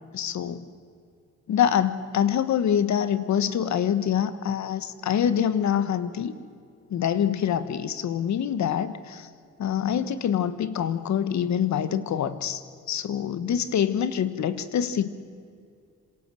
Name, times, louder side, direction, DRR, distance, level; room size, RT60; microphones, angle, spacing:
voice 1, 0.1-0.6 1.5-6.3 6.9-9.3 9.6-12.6 12.9-15.1, left 9 dB, 65° left, 13 dB, 1.4 m, -25 dB
27.0 x 26.5 x 7.7 m, 2.4 s
cardioid pair, 90°, 30 cm